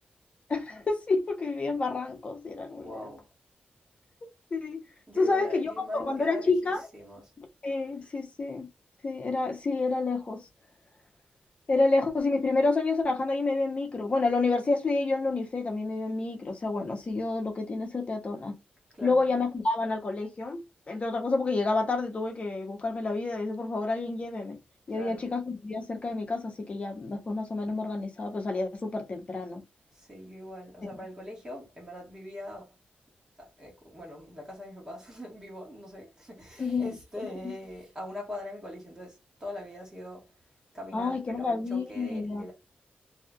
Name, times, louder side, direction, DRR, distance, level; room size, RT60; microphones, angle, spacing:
voice 1, 0.5-2.9 4.5-4.8 5.2-6.8 7.4-8.7 9.0-10.4 11.7-18.6 19.0-24.6 24.9-29.6 36.6-36.9 40.9-42.4, left 3 dB, 40° left, 0.8 m, -29 dB
voice 2, 2.7-3.2 5.1-7.3 18.9-19.3 24.9-25.3 29.9-32.7 33.4-40.3 40.7-42.5, left 1 dB, 20° right, 1.5 m, -42 dB
3.1 x 2.8 x 2.3 m
wide cardioid pair, 140°, 3 cm